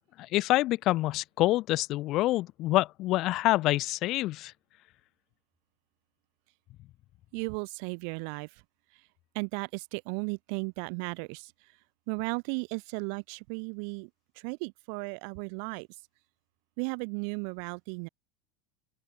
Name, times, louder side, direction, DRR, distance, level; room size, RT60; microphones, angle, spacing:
voice 1, 0.2-4.5, left 17 dB, 40° left, 0.5 m, -26 dB
voice 2, 7.3-8.5 9.3-11.5 12.1-14.1 14.4-15.9 16.8-18.1, right 40 dB or more, 55° right, 0.3 m, -35 dB
open air
supercardioid pair, 160°, 0 cm